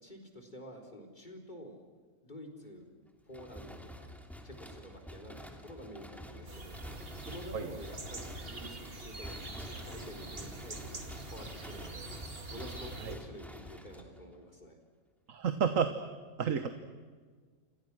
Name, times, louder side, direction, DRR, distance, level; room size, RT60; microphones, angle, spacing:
voice 1, 0.0-1.8 2.2-2.9 3.2-4.1 4.4-6.8 7.2-12.1 12.5-14.8, equal, 35° left, 2 dB, 4.4 m, -49 dB
sound 1, 3.3-14.5, equal, ahead, 2.8 m, -48 dB
sound 2, 6.5-13.2, right 2 dB, 45° right, 2.4 m, -45 dB
voice 2, 15.3-15.9 16.4-16.7, right 7 dB, 75° right, 8 dB, 1.6 m, -30 dB
30.0 x 27.5 x 6.3 m, 1.5 s
omnidirectional pair, 1.4 m